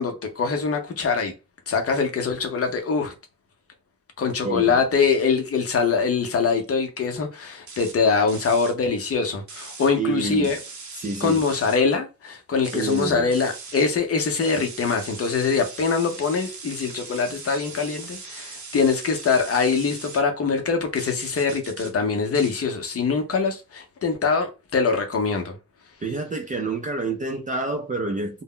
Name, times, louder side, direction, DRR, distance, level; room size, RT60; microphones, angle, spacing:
voice 1, 0.0-1.3 1.7-3.1 4.2-10.6 11.2-25.5, left 5 dB, 40° left, 0.6 m, -23 dB
voice 2, 4.4-4.8 10.0-10.5 11.0-11.4 12.7-13.3 26.0-28.4, right 3 dB, 25° right, 0.3 m, -28 dB
sound 1, 7.7-8.0 8.3-8.7 9.5-9.9 10.4-11.8 12.6-13.9 14.4-20.2 21.0-21.9 22.3-22.5, right 4 dB, 55° right, 0.8 m, -40 dB
2.1 x 2.0 x 3.7 m
wide cardioid pair, 145°, 34 cm